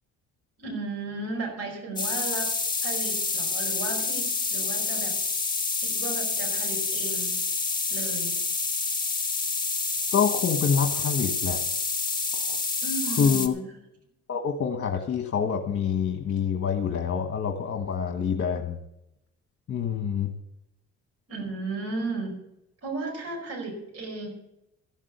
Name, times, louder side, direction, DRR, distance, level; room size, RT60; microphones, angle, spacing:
voice 1, 0.6-2.5 2.8-5.1 5.7-7.4 7.9-8.4 12.8-13.7 21.3-22.3 22.8-24.3, right 3 dB, 55° right, 0 dB, 5.2 m, -34 dB
sound 1, 2.0-13.5, left 4 dB, 15° left, 1.5 m, -28 dB
voice 2, 10.1-11.6 12.3-12.6 13.2-13.5 14.3-18.8 19.7-20.3, left 7 dB, 50° left, 4 dB, 1.4 m, -26 dB
14.5 x 7.4 x 7.0 m, 0.85 s
cardioid pair, 90°, 30 cm